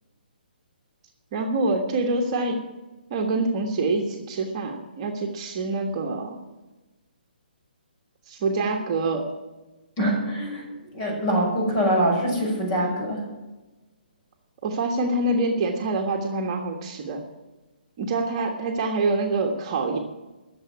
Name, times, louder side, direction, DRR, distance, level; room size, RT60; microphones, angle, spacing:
voice 1, 1.3-2.6 3.1-6.4 8.3-9.3 14.6-17.2 18.0-20.0, right 2 dB, 35° right, 2 dB, 1.4 m, -26 dB
voice 2, 10.0-10.6 10.9-13.2, equal, 30° left, 0 dB, 6.2 m, -24 dB
12.5 x 7.1 x 9.6 m, 1.1 s
hypercardioid pair, 155°, 5 cm